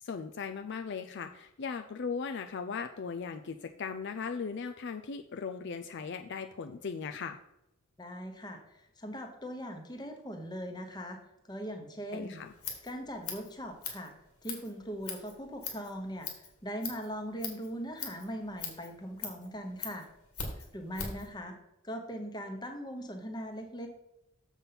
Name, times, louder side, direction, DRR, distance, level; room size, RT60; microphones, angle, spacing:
voice 1, 0.0-7.4 12.1-12.5, left 5 dB, 50° left, 6 dB, 0.4 m, -38 dB
voice 2, 8.0-8.6 9.0-11.2 11.5-12.4 12.8-14.1 14.4-16.3 16.6-20.1 20.5-21.5 21.8-23.9, equal, 20° left, 5 dB, 1.1 m, -40 dB
Scissors, 12.4-21.3, left 5 dB, 85° left, 2.2 m, -42 dB
7.2 x 5.5 x 5.9 m, 0.90 s
head